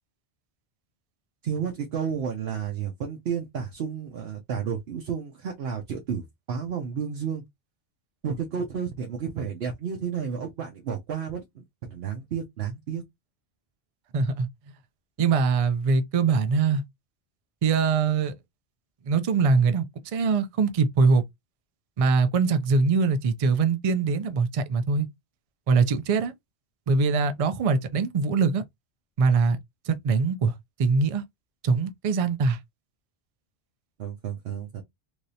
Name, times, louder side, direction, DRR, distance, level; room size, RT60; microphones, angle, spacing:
voice 1, 1.4-7.4 8.2-13.0 34.0-34.8, right 7 dB, 70° right, 0.9 m, -31 dB
voice 2, 14.1-14.5 15.2-16.8 17.6-18.3 19.1-19.9 20.1-21.2 22.0-25.1 25.7-26.3 26.9-28.6 29.2-29.6 29.9-31.2 31.6-32.6, right 4 dB, 55° right, 0.4 m, -22 dB
3.2 x 2.7 x 2.6 m
omnidirectional pair, 1.1 m